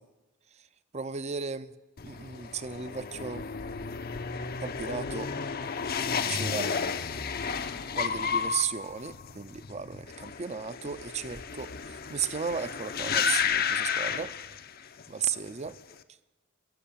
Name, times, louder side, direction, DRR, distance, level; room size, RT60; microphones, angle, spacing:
voice 1, 0.9-1.7 2.0-3.5 4.6-5.4 6.1-6.9 7.9-14.4 15.1-15.8, right 6 dB, 35° right, 0.6 m, -35 dB
sound 1, 2.0-15.1 15.3-15.9, left 6 dB, 50° left, 0.7 m, -32 dB
15.5 x 8.1 x 8.6 m
head